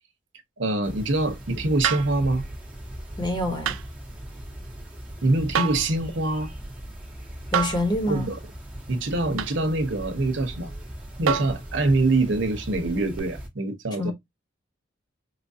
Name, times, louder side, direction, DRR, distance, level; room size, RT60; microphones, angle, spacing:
voice 1, 0.6-2.5 5.2-6.5 8.1-8.4 8.9-10.7 11.2-14.1, right 2 dB, 65° right, 0.9 m, -24 dB
sound 1, 0.8-13.5, right 1 dB, 5° right, 1.0 m, -39 dB
sound 2, 1.8-2.2 3.7-3.9 5.5-5.9 7.5-7.9 9.4-9.6 11.3-11.6 13.2-13.3, right 7 dB, 90° right, 0.4 m, -26 dB
voice 2, 3.2-3.8 7.5-8.3 14.0-14.1, left 1 dB, 20° left, 1.0 m, -26 dB
4.5 x 2.4 x 2.7 m
head